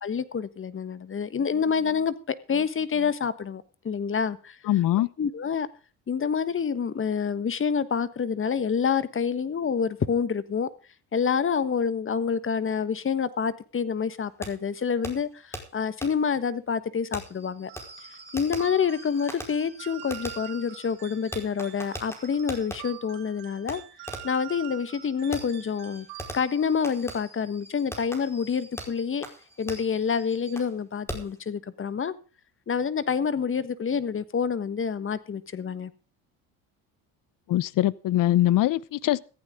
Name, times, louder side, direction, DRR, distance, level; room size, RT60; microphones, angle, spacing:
voice 1, 0.0-4.6 5.2-5.7 6.1-10.7 11.1-17.7 18.3-23.8 24.2-26.1 26.3-29.2 29.6-32.1 32.7-35.9, left 6 dB, 30° left, 1.4 m, -27 dB
voice 2, 4.7-5.1 37.5-39.2, left 14 dB, 55° left, 0.9 m, -22 dB
Fireworks, 14.4-14.5 15.0-15.1 15.5-15.6 16.0-16.1 17.1-22.8 23.7-23.8 24.1-24.4 25.3-30.7 31.1-31.4, equal, 5° left, 4.7 m, -41 dB
sound 1, 17.7-26.7, right 13 dB, 75° right, 3.3 m, -45 dB
15.0 x 15.0 x 3.7 m
supercardioid pair, 90°, 39 cm